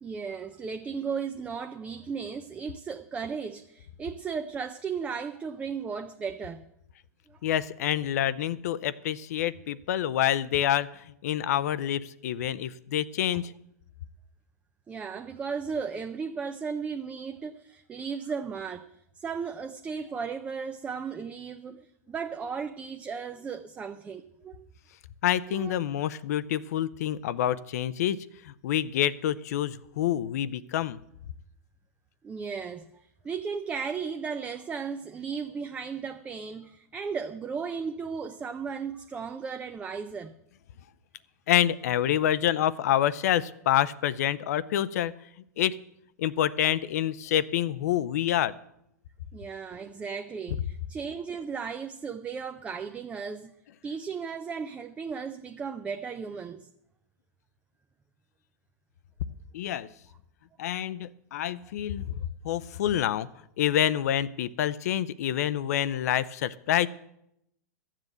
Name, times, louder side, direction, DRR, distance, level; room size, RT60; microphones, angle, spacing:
voice 1, 0.0-6.7 7.3-7.4 13.3-13.4 14.9-24.7 25.5-25.8 32.2-40.3 49.3-53.5 53.8-56.7, right 6 dB, 15° right, 0.5 m, -35 dB
voice 2, 7.4-13.5 25.2-31.0 41.5-45.1 45.6-45.7 46.2-48.5 59.5-59.9 60.6-62.2 62.4-63.3 63.6-66.9, left 11 dB, 65° left, 0.6 m, -27 dB
12.5 x 7.5 x 7.8 m
hypercardioid pair, 140°, 9 cm